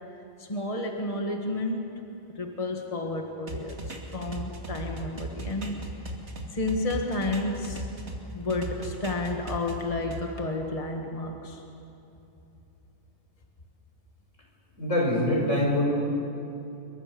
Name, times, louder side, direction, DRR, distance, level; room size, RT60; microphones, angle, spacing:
voice 1, 0.4-2.0 2.4-5.8 6.5-7.9 8.3-11.6, left 2 dB, 30° left, 2 dB, 1.9 m, -31 dB
sound 1, 3.5-8.2 8.5-10.2, right 1 dB, 65° right, 2.8 m, -37 dB
voice 2, 14.8-15.8, left 1 dB, 85° left, -1 dB, 6.1 m, -24 dB
27.0 x 23.0 x 7.0 m, 2.9 s
omnidirectional pair, 1.3 m